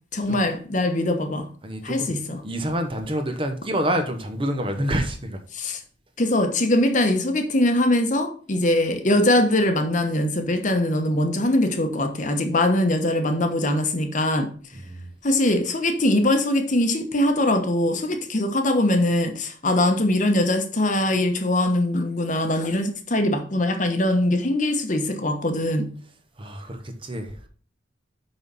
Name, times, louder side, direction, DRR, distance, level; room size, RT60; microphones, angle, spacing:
voice 1, 0.1-1.5 1.8-2.4 5.5-5.8 6.2-14.5 15.2-25.9, left 1 dB, 40° left, 1.0 m, -22 dB
voice 2, 1.6-2.2 2.4-5.4 14.9-15.1 26.4-27.5, equal, 30° right, 1.0 m, -27 dB
6.0 x 5.5 x 5.4 m
head